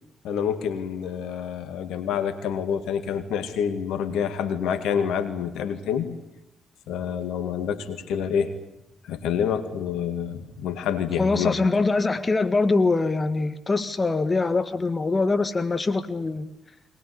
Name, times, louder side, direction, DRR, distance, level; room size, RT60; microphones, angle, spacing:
voice 1, 0.2-6.1 6.9-8.5 9.1-11.6, left 8 dB, 75° left, 9 dB, 2.2 m, -27 dB
voice 2, 11.2-16.5, left 3 dB, 35° left, 11 dB, 1.7 m, -23 dB
22.0 x 21.0 x 9.8 m, 0.83 s
hypercardioid pair, 45°, 0 cm